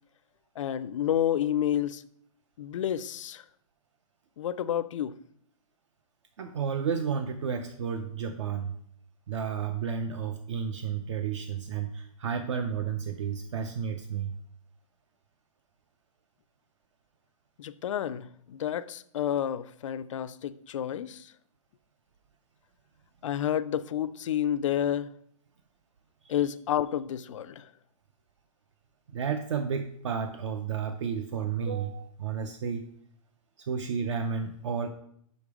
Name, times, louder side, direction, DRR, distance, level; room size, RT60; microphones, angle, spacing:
voice 1, 0.6-2.0 2.6-3.4 4.4-5.2 17.6-21.3 23.2-25.1 26.3-27.7, left 10 dB, 55° left, 0.4 m, -30 dB
voice 2, 6.4-8.7 9.3-14.4 26.2-26.4 29.1-32.9 33.6-34.9, right 6 dB, 55° right, 0.5 m, -32 dB
5.9 x 5.2 x 4.8 m
hypercardioid pair, 180°, 19 cm